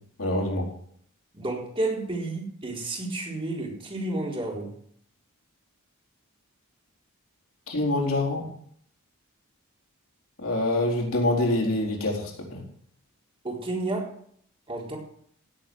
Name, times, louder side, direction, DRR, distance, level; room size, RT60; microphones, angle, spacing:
voice 1, 0.2-0.7 7.7-8.5 10.4-12.6, left 2 dB, 65° left, -2 dB, 4.3 m, -25 dB
voice 2, 1.3-4.7 13.4-14.1 14.7-15.0, right 2 dB, 25° right, -1 dB, 4.1 m, -31 dB
17.0 x 8.1 x 6.2 m, 0.64 s
head